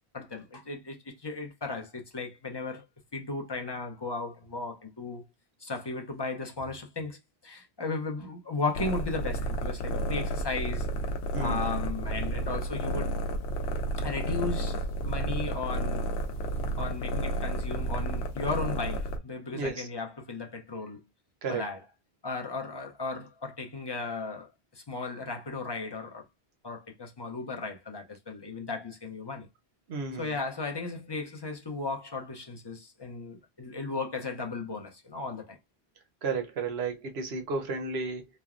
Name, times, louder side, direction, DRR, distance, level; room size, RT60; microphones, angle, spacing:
voice 1, 0.1-2.9 3.1-5.2 5.6-10.9 11.4-13.1 14.0-16.1 16.8-21.0 21.5-21.8 22.2-26.3 26.6-29.5 30.2-35.6, left 3 dB, 30° left, 0.5 m, -36 dB
sound 1, 8.7-19.2, right 1 dB, 85° left, 0.9 m, -31 dB
voice 2, 11.3-11.7 19.5-19.9 21.4-21.6 29.9-30.4 36.2-38.3, right 4 dB, 75° right, 1.0 m, -33 dB
3.1 x 2.1 x 2.4 m
omnidirectional pair, 1.1 m